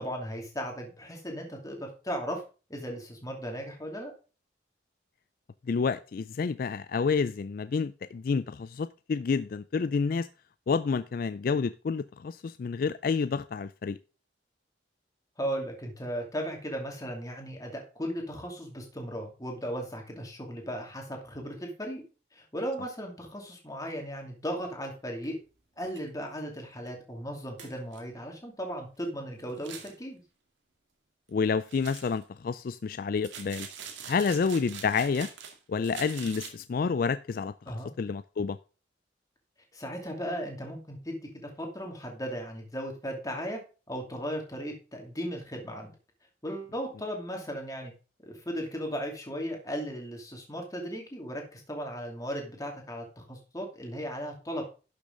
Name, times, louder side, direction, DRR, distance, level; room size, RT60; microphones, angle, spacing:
voice 1, 0.0-2.4 2.7-4.1 15.4-22.0 22.3-25.4 25.8-30.2 37.6-37.9 39.7-43.6 43.9-45.9 46.4-47.9 48.2-54.6, equal, 20° left, 2.6 m, -36 dB
voice 2, 5.7-10.3 10.7-14.0 31.3-33.7 34.1-35.3 35.7-38.6, left 5 dB, 50° left, 0.3 m, -29 dB
sound 1, 25.2-25.3 25.9-26.0 26.4-26.5 26.9-27.0 27.6-28.0 29.5-30.0 31.7-32.2 33.2-35.6 35.8-36.5, right 7 dB, 80° right, 2.0 m, -44 dB
11.5 x 6.6 x 3.8 m
head